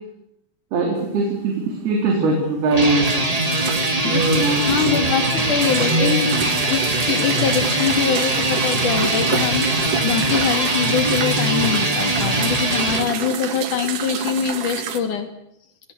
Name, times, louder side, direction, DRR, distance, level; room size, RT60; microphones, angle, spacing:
voice 1, 0.7-3.3 4.0-5.1 5.6-6.7, right 2 dB, 90° right, 1 dB, 5.7 m, -22 dB
sound 1, 1.0-1.1 1.6-1.7 2.0-2.4 2.6-15.0, right 8 dB, 60° right, 3.0 m, -29 dB
sound 2, 2.7-13.1, right 1 dB, 20° right, 1.0 m, -22 dB
voice 2, 4.7-6.3 6.7-15.3, left 7 dB, 55° left, 7 dB, 4.0 m, -23 dB
27.0 x 18.5 x 8.2 m, 0.78 s
omnidirectional pair, 4.4 m